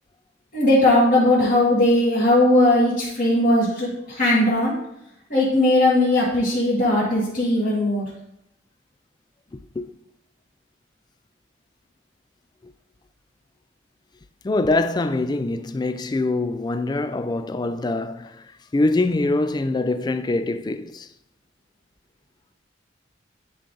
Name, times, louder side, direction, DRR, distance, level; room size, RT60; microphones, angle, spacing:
voice 1, 0.5-4.7 5.3-8.0, left 1 dB, 45° left, 1.8 m, -18 dB
voice 2, 14.4-18.4 18.7-21.1, left 2 dB, 20° left, 0.3 m, -24 dB
10.0 x 3.8 x 3.9 m
head